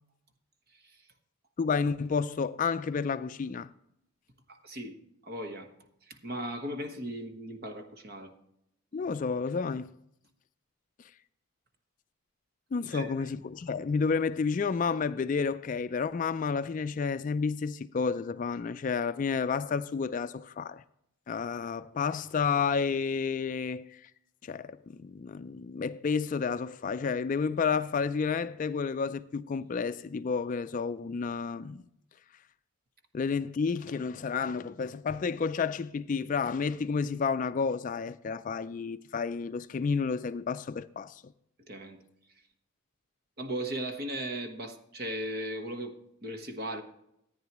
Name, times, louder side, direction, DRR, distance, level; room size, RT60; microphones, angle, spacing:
voice 1, 1.6-3.7 8.9-9.9 12.7-20.8 21.3-23.9 24.4-31.8 33.1-41.2, left 5 dB, 40° left, 0.3 m, -31 dB
voice 2, 4.5-5.7 6.0-8.3 12.9-13.3 41.6-42.0 43.4-46.8, right 1 dB, 45° right, 1.2 m, -37 dB
14.0 x 9.3 x 3.0 m
head